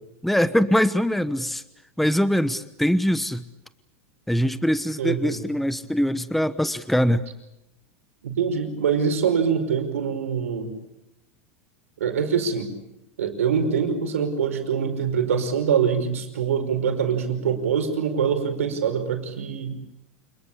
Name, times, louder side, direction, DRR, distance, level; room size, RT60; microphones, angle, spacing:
voice 1, 0.2-1.6 2.0-3.4 4.3-7.2, equal, ahead, 13 dB, 1.1 m, -22 dB
voice 2, 5.0-5.4 8.2-10.7 12.0-12.7 13.2-19.8, right 7 dB, 90° right, 6 dB, 5.2 m, -24 dB
27.5 x 21.5 x 8.5 m, 0.87 s
hypercardioid pair, 110°, 7 cm